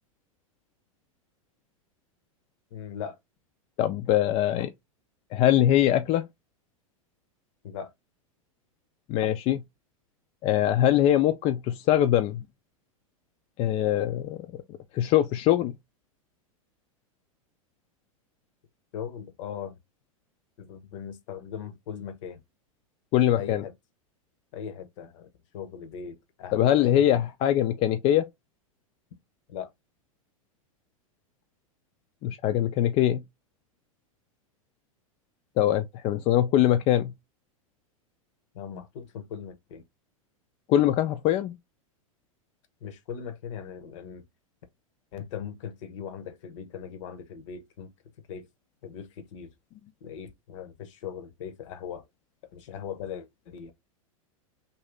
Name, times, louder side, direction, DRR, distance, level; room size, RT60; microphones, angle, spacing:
voice 1, 2.7-3.2 7.6-7.9 18.9-19.7 20.6-22.4 23.4-23.7 24.5-27.2 29.5-29.7 38.5-39.8 42.8-44.2 45.1-47.9 48.3-48.5 48.8-49.5 50.0-52.0 52.5-53.7, left 8 dB, 60° left, 0.8 m, -39 dB
voice 2, 3.8-4.7 5.3-6.2 9.1-9.6 10.4-12.4 13.6-14.6 14.9-15.7 23.1-23.6 26.5-28.2 32.2-33.2 35.6-37.1 40.7-41.5, left 12 dB, 35° left, 0.4 m, -22 dB
2.7 x 2.6 x 3.2 m
hypercardioid pair, 95°, 18 cm